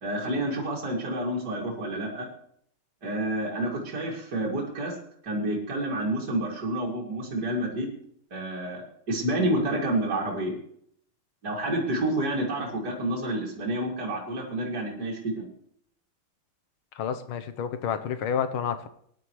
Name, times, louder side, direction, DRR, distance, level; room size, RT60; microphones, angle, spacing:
voice 1, 0.0-2.3 3.0-4.9 5.2-7.9 8.3-8.8 9.1-10.6 11.4-15.5, right 1 dB, 50° right, -4 dB, 2.9 m, -29 dB
voice 2, 17.0-18.9, left 8 dB, 80° left, 10 dB, 1.8 m, -29 dB
19.5 x 11.0 x 3.2 m, 0.68 s
omnidirectional pair, 2.3 m